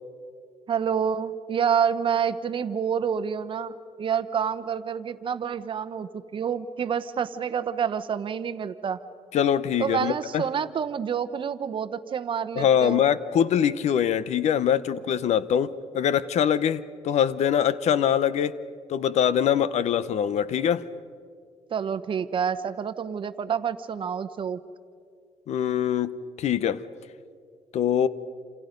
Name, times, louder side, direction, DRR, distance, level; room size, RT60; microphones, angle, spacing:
voice 1, 0.7-9.0 9.8-13.0 21.7-24.6, right 7 dB, 45° right, 12 dB, 1.0 m, -28 dB
voice 2, 9.3-10.4 12.6-18.5 18.9-20.8 25.5-26.8 27.7-28.1, left 9 dB, 65° left, 16 dB, 0.8 m, -23 dB
28.0 x 27.5 x 5.3 m, 2.3 s
cardioid pair, 125°, 12 cm